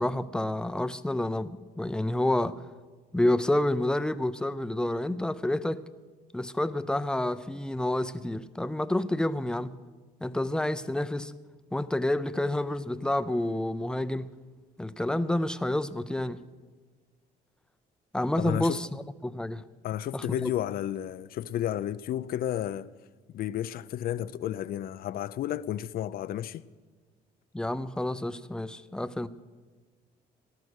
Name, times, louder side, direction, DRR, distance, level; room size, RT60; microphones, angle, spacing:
voice 1, 0.0-2.6 3.1-5.9 6.3-9.7 10.2-11.3 11.7-14.3 14.8-16.4 18.1-19.6 20.1-20.5 27.5-29.3, left 1 dB, 5° left, 0.6 m, -29 dB
voice 2, 18.4-18.8 19.8-22.9 23.3-26.6, left 11 dB, 60° left, 0.6 m, -32 dB
18.5 x 12.5 x 6.4 m
cardioid pair, 110°, 17 cm